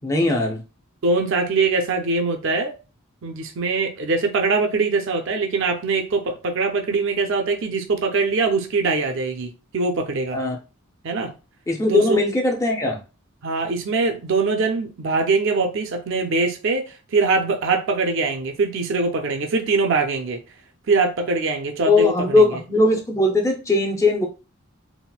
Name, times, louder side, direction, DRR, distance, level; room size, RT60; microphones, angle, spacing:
voice 1, 0.0-0.6 10.3-10.6 11.7-13.0 21.9-24.3, left 2 dB, 15° left, 0.5 m, -19 dB
voice 2, 1.0-2.7 3.2-10.4 11.0-11.3 11.9-12.2 13.4-20.4 20.9-22.6, right 3 dB, 60° right, 0.4 m, -22 dB
4.1 x 2.0 x 2.3 m
head